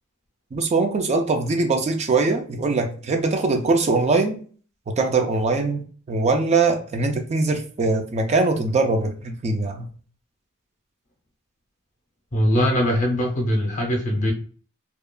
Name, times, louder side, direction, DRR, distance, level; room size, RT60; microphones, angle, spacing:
voice 1, 0.5-4.4 4.9-9.9, right 3 dB, 30° right, 4 dB, 0.3 m, -22 dB
voice 2, 12.3-14.3, equal, 35° left, 1 dB, 0.7 m, -21 dB
2.8 x 2.3 x 2.2 m, 0.42 s
head